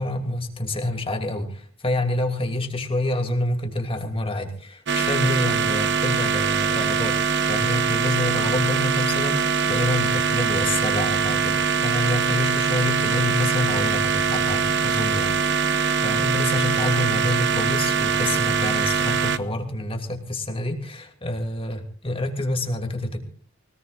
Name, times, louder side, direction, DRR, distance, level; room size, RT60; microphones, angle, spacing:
voice 1, 0.0-7.2 7.5-23.3, left 1 dB, 30° left, 5 dB, 2.8 m, -27 dB
sound 1, 4.9-19.4, right 6 dB, 60° right, 1.0 m, -23 dB
24.5 x 19.0 x 2.5 m, 0.43 s
head